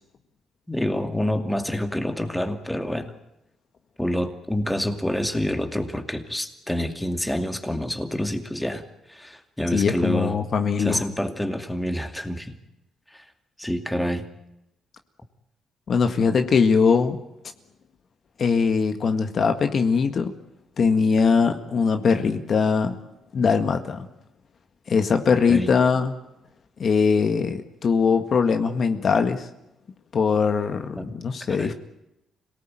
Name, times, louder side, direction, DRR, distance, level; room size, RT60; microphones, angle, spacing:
voice 1, 0.7-3.1 4.0-8.8 9.1-10.4 10.8-12.6 13.1-13.2 13.6-14.3 25.5-25.7 31.0-31.1 31.5-31.7, left 1 dB, 5° left, 6 dB, 2.5 m, -27 dB
voice 2, 9.7-11.0 15.9-17.2 18.4-20.3 20.8-22.9 23.3-24.1 24.9-26.2 26.8-29.5 30.1-31.7, left 5 dB, 50° left, 7 dB, 1.8 m, -21 dB
26.0 x 18.5 x 9.1 m, 0.89 s
cardioid pair, 90°, 0 cm